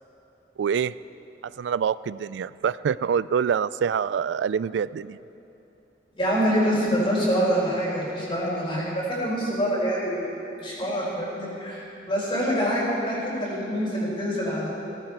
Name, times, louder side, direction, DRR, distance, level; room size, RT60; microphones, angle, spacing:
voice 1, 0.6-0.9 1.4-5.2, right 7 dB, 80° right, 18 dB, 0.3 m, -26 dB
voice 2, 6.2-10.3 10.6-14.7, equal, 30° left, -6 dB, 3.9 m, -25 dB
17.0 x 14.5 x 4.6 m, 2.9 s
head